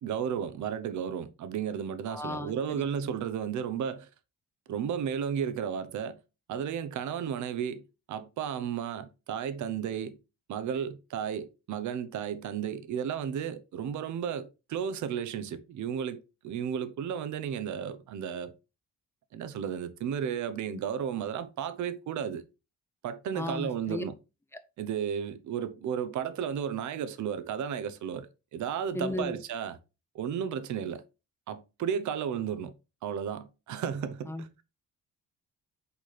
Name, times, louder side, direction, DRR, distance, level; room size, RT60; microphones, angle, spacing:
voice 1, 0.0-4.1 4.7-6.2 6.5-10.2 10.5-18.5 19.3-22.4 23.0-24.1 24.8-29.8 30.1-31.0 31.5-32.7 33.0-34.6, right 8 dB, 70° right, 0.8 m, -33 dB
voice 2, 2.1-2.9 20.7-20.8 23.3-24.0 28.9-29.4 34.3-34.6, left 1 dB, 10° left, 0.9 m, -36 dB
5.6 x 4.3 x 4.0 m
cardioid pair, 90°, 30 cm